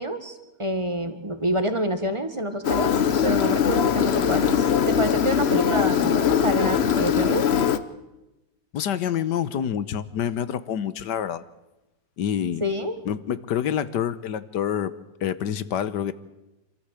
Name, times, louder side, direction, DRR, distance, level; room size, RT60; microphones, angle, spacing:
voice 1, 0.0-2.9 3.2-7.5 12.6-13.0, equal, 20° right, 8 dB, 1.5 m, -27 dB
Engine, 2.6-7.8, left 8 dB, 50° left, 0.8 m, -21 dB
voice 2, 8.7-11.4 12.2-12.6 13.0-14.9 15.2-16.1, left 9 dB, 70° left, 15 dB, 1.5 m, -27 dB
26.5 x 13.5 x 8.2 m, 1.0 s
omnidirectional pair, 1.9 m